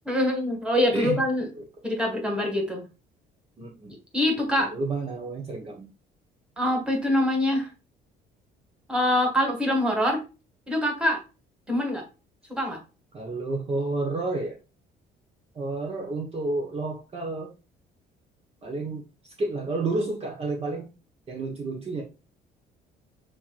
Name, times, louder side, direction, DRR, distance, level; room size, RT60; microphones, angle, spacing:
voice 1, 0.1-1.5 1.8-2.9 4.1-4.7 6.6-7.7 8.9-10.2 10.7-11.2 11.7-12.0 12.6-12.8, left 1 dB, 5° right, 1 dB, 1.9 m, -24 dB
voice 2, 3.6-3.9 4.6-5.9 13.1-14.6 15.5-17.5 18.6-20.9 21.3-22.0, right 3 dB, 35° right, 1 dB, 1.2 m, -30 dB
6.8 x 3.0 x 2.5 m, 0.30 s
cardioid pair, 110°, 17 cm